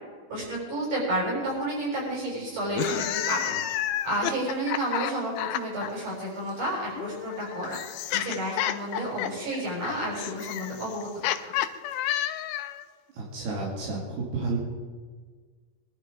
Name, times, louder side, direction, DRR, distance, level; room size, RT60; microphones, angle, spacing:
voice 1, 0.3-3.6 4.0-7.8 8.1-11.1, right 1 dB, 55° right, -5 dB, 8.3 m, -31 dB
sound 1, 2.7-5.9 7.0-12.8, left 12 dB, 80° left, 2.5 m, -31 dB
voice 2, 13.1-14.6, right 3 dB, 85° right, -4 dB, 4.6 m, -31 dB
23.0 x 12.0 x 5.3 m, 1.5 s
omnidirectional pair, 4.4 m